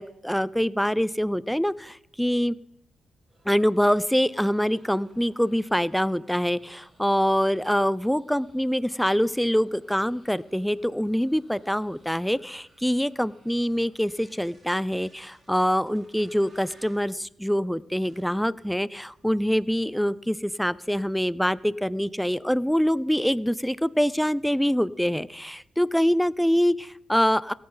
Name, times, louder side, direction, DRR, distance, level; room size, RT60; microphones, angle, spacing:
voice 1, 0.0-2.6 3.5-27.5, equal, ahead, 19 dB, 0.4 m, -25 dB
sound 1, 3.3-17.1 17.8-18.4 18.9-19.2 19.5-20.3, right 1 dB, 35° right, 5.8 m, -60 dB
17.0 x 13.5 x 4.0 m, 0.78 s
cardioid pair, 120°, 0 cm